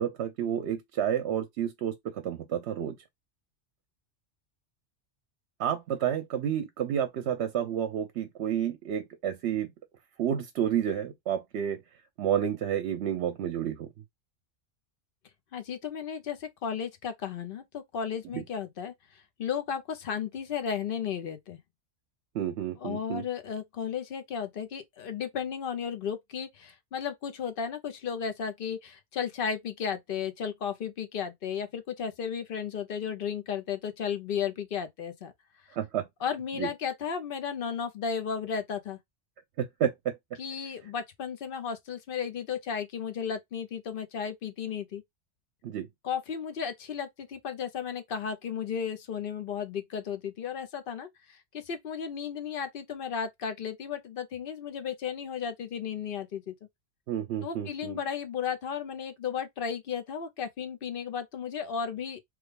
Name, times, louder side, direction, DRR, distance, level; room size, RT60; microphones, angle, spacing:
voice 1, 0.0-3.0 5.6-9.7 10.2-11.8 12.2-13.9 18.3-18.4 22.3-23.2 35.7-36.1 36.6-36.7 39.6-40.2 45.6-45.9 57.1-58.0, right 9 dB, 70° right, 0.8 m, -30 dB
voice 2, 15.5-21.6 22.8-35.3 36.2-39.0 40.4-45.0 46.0-56.5 57.4-62.2, left 7 dB, 55° left, 0.8 m, -34 dB
3.2 x 2.2 x 3.4 m
omnidirectional pair, 1.2 m